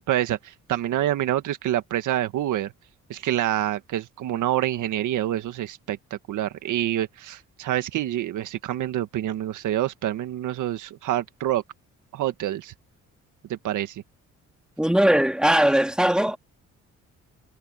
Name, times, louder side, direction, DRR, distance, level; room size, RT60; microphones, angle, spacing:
voice 1, 0.0-2.7 3.1-11.6 12.1-12.7 13.5-14.0, right 12 dB, 80° right, 1.7 m, -27 dB
voice 2, 14.8-16.4, right 1 dB, 5° right, 2.5 m, -19 dB
cardioid pair, 90°, 30 cm